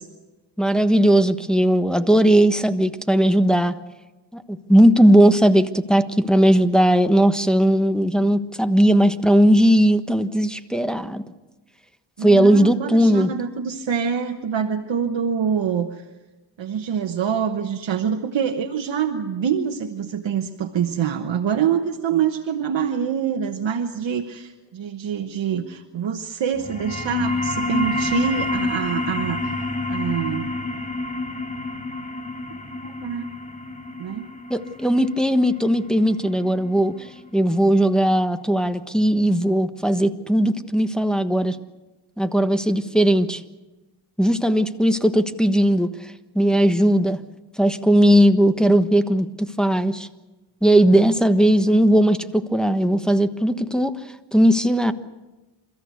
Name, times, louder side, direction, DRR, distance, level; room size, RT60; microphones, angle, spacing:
voice 1, 0.6-3.7 4.3-11.2 12.2-13.3 34.5-41.6 42.2-43.4 44.2-45.9 46.3-47.2 47.6-50.1 50.6-53.9 54.3-54.9, right 1 dB, ahead, 7 dB, 1.3 m, -18 dB
voice 2, 12.2-16.0 16.6-29.6 29.9-30.6 32.5-32.6 32.8-33.3 34.0-34.3, right 7 dB, 85° right, 4 dB, 1.2 m, -25 dB
sound 1, 26.5-37.6, left 2 dB, 15° left, 1.9 m, -28 dB
29.0 x 14.0 x 8.2 m, 1.1 s
cardioid pair, 65°, 44 cm